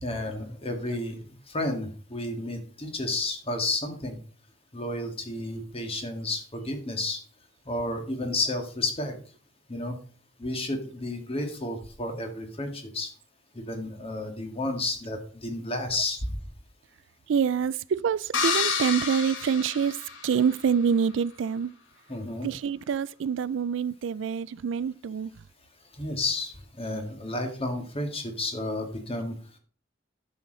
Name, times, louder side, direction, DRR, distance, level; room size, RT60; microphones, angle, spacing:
voice 1, 0.0-4.2 4.7-7.2 7.7-9.1 9.7-10.0 10.4-13.1 13.5-16.4 22.1-22.5 25.9-29.3, left 2 dB, 30° left, 1.8 m, -31 dB
voice 2, 17.3-20.0 20.2-21.7 22.4-25.3, right 7 dB, 75° right, 0.4 m, -26 dB
sound 1, 18.3-20.6, left 5 dB, 90° left, 1.4 m, -29 dB
10.5 x 6.4 x 3.9 m
head